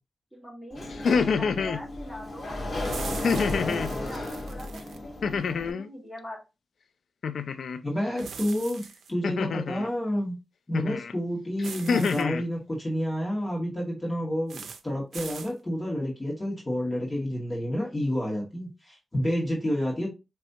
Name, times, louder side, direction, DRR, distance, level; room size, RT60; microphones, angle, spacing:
voice 1, 0.3-2.6 2.9-6.4, equal, 5° left, 1.9 m, -43 dB
Sliding door, 0.7-5.7, left 1 dB, 45° left, 1.7 m, -34 dB
sound 1, 0.9-1.8 3.2-3.9 5.2-5.9 7.2-7.8 9.2-9.9 10.7-11.1 11.6-12.4, left 5 dB, 80° left, 0.4 m, -27 dB
sound 2, 2.8-5.0 8.2-9.1 11.6-12.2 14.5-14.8 15.1-15.5, right 6 dB, 90° right, 0.4 m, -41 dB
voice 2, 7.8-8.8 9.1-10.3 10.7-20.1, equal, 25° left, 2.0 m, -29 dB
5.2 x 3.3 x 2.8 m
cardioid pair, 85°, 0 cm